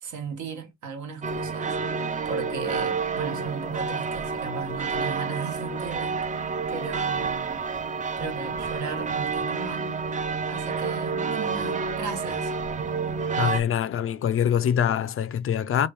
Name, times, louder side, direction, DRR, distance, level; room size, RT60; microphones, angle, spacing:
voice 1, 0.0-1.8 2.2-7.6 8.2-9.9 10.5-12.5, right 5 dB, 70° right, 1.1 m, -36 dB
sound 1, 1.2-13.6, right 5 dB, 25° right, 0.4 m, -29 dB
voice 2, 13.4-15.9, left 9 dB, 45° left, 0.4 m, -24 dB
3.1 x 2.6 x 3.3 m
cardioid pair, 90°, 30 cm